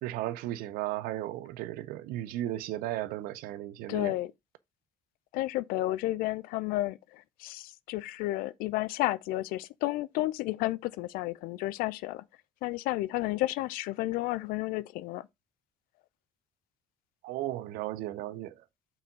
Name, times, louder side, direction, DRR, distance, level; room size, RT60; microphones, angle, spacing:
voice 1, 0.0-4.1 17.2-18.5, right 14 dB, 65° right, 0.6 m, -35 dB
voice 2, 3.9-4.3 5.3-12.2 12.6-15.3, left 17 dB, 65° left, 0.5 m, -32 dB
5.8 x 4.9 x 5.0 m
figure-of-eight pair, 50°, 16 cm